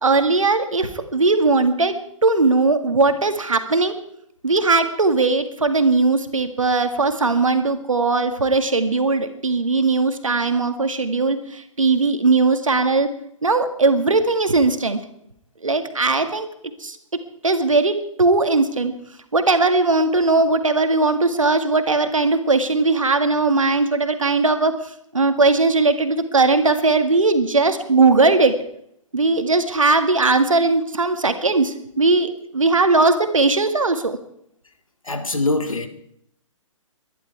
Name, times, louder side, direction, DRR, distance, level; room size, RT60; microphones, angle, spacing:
voice 1, 0.0-2.0 2.2-3.9 4.4-13.1 13.4-15.0 15.6-16.5 16.8-17.0 17.4-18.9 19.3-24.7 25.1-28.5 29.1-34.2, right 3 dB, 75° right, 8 dB, 2.0 m, -19 dB
voice 2, 35.1-35.9, left 2 dB, 80° left, 6 dB, 2.2 m, -23 dB
22.0 x 11.5 x 4.8 m, 0.72 s
figure-of-eight pair, 130°, 17 cm